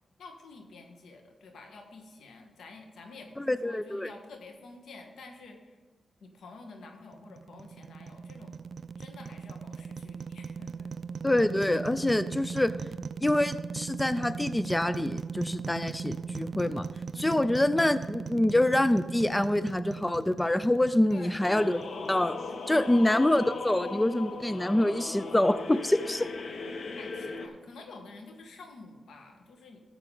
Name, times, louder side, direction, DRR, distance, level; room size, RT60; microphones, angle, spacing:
voice 1, 0.2-5.8 6.2-8.6 9.0-10.9 17.1-17.5 21.1-21.6 22.7-23.0 26.9-29.8, left 3 dB, 85° left, 4 dB, 1.4 m, -49 dB
voice 2, 3.4-4.1 11.2-12.7 13.2-16.8 17.1-21.8 22.1-22.4 22.7-26.3, left 1 dB, 15° left, 13 dB, 0.4 m, -26 dB
sound 1, 7.1-22.3, right 5 dB, 60° right, 0.3 m, -39 dB
sound 2, 21.4-27.5, left 3 dB, 65° left, 1.0 m, -38 dB
13.5 x 7.0 x 3.9 m, 1.3 s
cardioid pair, 70°, 0 cm